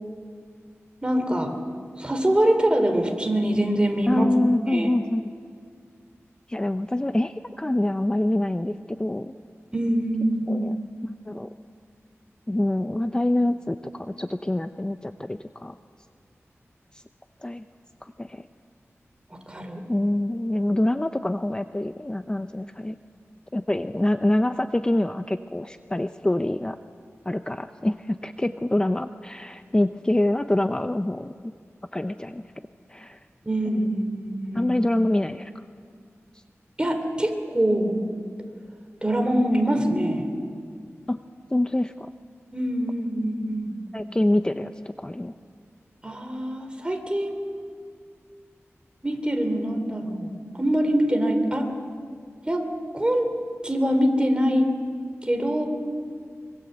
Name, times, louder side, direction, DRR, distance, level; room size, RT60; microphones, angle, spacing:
voice 1, 1.0-1.6 2.0-4.3 4.7-4.9 9.7-10.7 19.5-19.8 33.5-34.7 36.8-38.0 39.0-40.3 42.5-43.7 46.0-47.3 49.0-51.7 52.5-52.6 52.9-53.3 53.6-54.7 55.2-55.7, right 1 dB, 20° right, 5 dB, 3.6 m, -24 dB
voice 2, 4.1-5.3 6.5-9.3 10.5-10.8 11.3-11.5 12.5-15.7 17.4-17.6 18.2-18.5 19.9-23.0 23.5-26.8 27.3-31.3 31.9-32.4 32.9-33.2 33.7-33.9 34.5-35.5 41.1-41.2 41.5-42.1 43.9-45.3, left 1 dB, 15° left, 9 dB, 0.6 m, -25 dB
25.0 x 24.0 x 8.1 m, 2.1 s
wide cardioid pair, 80°, 5 cm